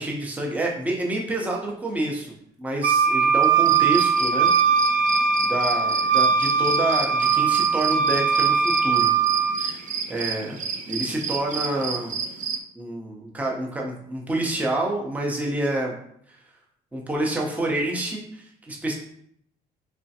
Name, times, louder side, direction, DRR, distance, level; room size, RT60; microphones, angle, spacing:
voice 1, 0.0-2.3 2.6-4.5 5.4-9.1 9.6-10.6 10.9-12.2 12.8-16.0 16.3-16.4 16.9-18.9, right 1 dB, 10° right, -1 dB, 0.7 m, -28 dB
Wind instrument woodwind instrument, 2.8-9.6, right 6 dB, 85° right, 0.9 m, -20 dB
sound 1, 3.4-12.6, right 5 dB, 50° right, 0.5 m, -31 dB
3.6 x 3.2 x 2.8 m, 0.69 s
cardioid pair, 110°, 17 cm